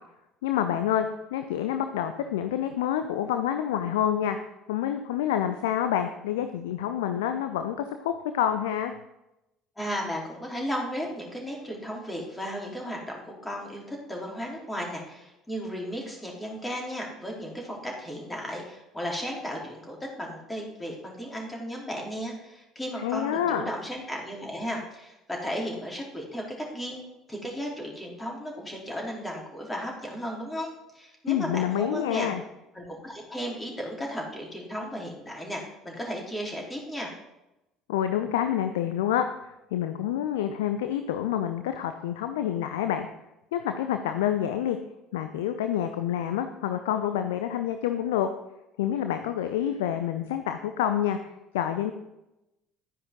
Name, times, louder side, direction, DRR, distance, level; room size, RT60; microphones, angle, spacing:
voice 1, 0.4-4.4 4.7-8.9 23.0-23.7 31.3-32.4 37.9-43.1 43.5-44.8 45.1-48.3 48.8-51.2 51.5-51.9, left 10 dB, 65° left, 8 dB, 0.6 m, -28 dB
voice 2, 9.8-26.4 26.7-27.0 27.3-32.3 32.7-37.1, equal, 10° left, -1 dB, 3.7 m, -35 dB
12.0 x 9.6 x 3.7 m, 0.91 s
figure-of-eight pair, 60°, 0 cm